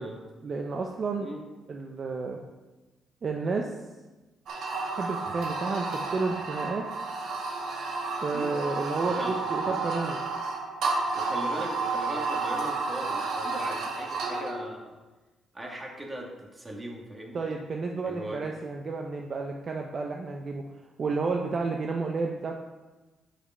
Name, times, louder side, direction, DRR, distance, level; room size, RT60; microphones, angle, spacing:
voice 1, 0.4-1.3 1.7-2.4 3.2-3.7 4.9-6.9 8.2-10.2 17.3-20.6 21.0-22.5, right 4 dB, 45° right, 2 dB, 0.7 m, -31 dB
sound 1, 4.5-14.6, right 3 dB, 70° right, 1.5 m, -31 dB
voice 2, 11.1-15.0 15.5-17.4 18.0-18.4, right 1 dB, 20° right, 0 dB, 1.8 m, -39 dB
7.6 x 5.0 x 5.6 m, 1.2 s
cardioid pair, 90°, 0 cm